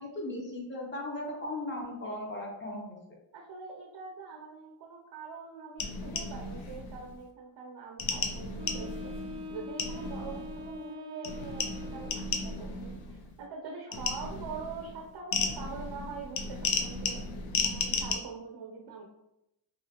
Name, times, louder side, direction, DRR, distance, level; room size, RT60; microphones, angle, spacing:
voice 1, 0.0-3.0, left 1 dB, 25° left, -1 dB, 0.8 m, -37 dB
voice 2, 3.3-9.1 9.5-17.2 17.6-19.1, right 4 dB, 55° right, 0 dB, 0.6 m, -44 dB
sound 1, 5.8-7.2 8.0-10.8 11.2-13.4 13.9-18.1, left 4 dB, 70° left, 0.6 m, -35 dB
Wind instrument woodwind instrument, 8.6-12.7, left 2 dB, 10° right, 0.4 m, -43 dB
3.1 x 2.4 x 2.8 m, 0.87 s
cardioid pair, 100°, 49 cm